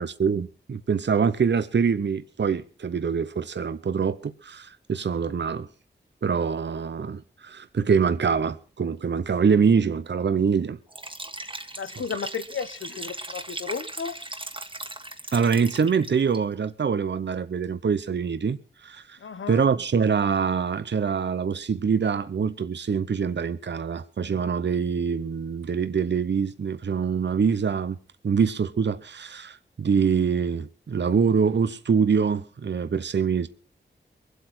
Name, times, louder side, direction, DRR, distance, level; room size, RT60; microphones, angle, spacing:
voice 1, 0.0-5.7 6.2-10.8 15.3-19.2 19.5-28.0 28.2-33.5, right 6 dB, 65° right, 0.8 m, -24 dB
Liquid, 10.9-16.4, right 2 dB, 25° right, 1.6 m, -38 dB
voice 2, 11.8-14.3 19.2-19.6, left 6 dB, 90° left, 1.0 m, -34 dB
22.5 x 8.1 x 6.0 m
cardioid pair, 55°, 20 cm